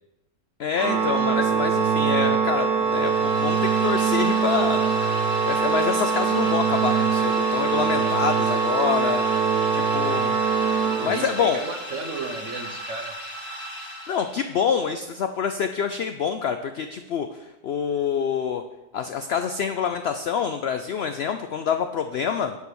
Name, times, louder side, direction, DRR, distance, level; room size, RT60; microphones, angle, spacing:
voice 1, 0.6-4.8 5.5-9.2 9.7-10.3 10.7-11.6 14.1-18.6 18.9-22.6, left 7 dB, 70° left, 8 dB, 0.6 m, -26 dB
Organ, 0.7-11.6, right 6 dB, 85° right, 1.3 m, -23 dB
sound 1, 2.8-14.7, equal, 35° left, 1.7 m, -36 dB
voice 2, 11.0-13.1, right 3 dB, 55° right, 4 dB, 1.3 m, -34 dB
11.0 x 4.7 x 6.9 m, 1.0 s
omnidirectional pair, 1.6 m